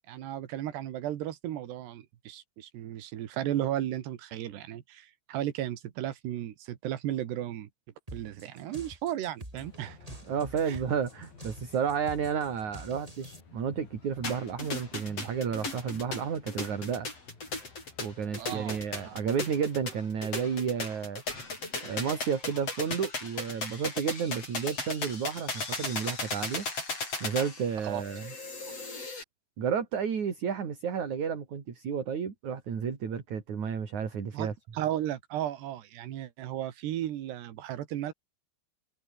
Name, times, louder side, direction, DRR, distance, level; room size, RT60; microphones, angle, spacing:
voice 1, 0.1-7.7 8.1-10.2 10.7-10.8 18.4-19.2 27.8-28.0 34.3-38.1, right 12 dB, 85° right, 3.9 m, -35 dB
sound 1, 8.1-13.4, right 1 dB, 10° right, 7.4 m, -47 dB
sound 2, 9.5-19.3, left 5 dB, 60° left, 7.8 m, -54 dB
voice 2, 10.3-17.1 18.0-21.2 21.8-26.7 27.2-28.3 29.6-34.5, right 7 dB, 50° right, 4.4 m, -32 dB
sound 3, 14.2-29.2, left 3 dB, 35° left, 8.0 m, -36 dB
omnidirectional pair, 4.7 m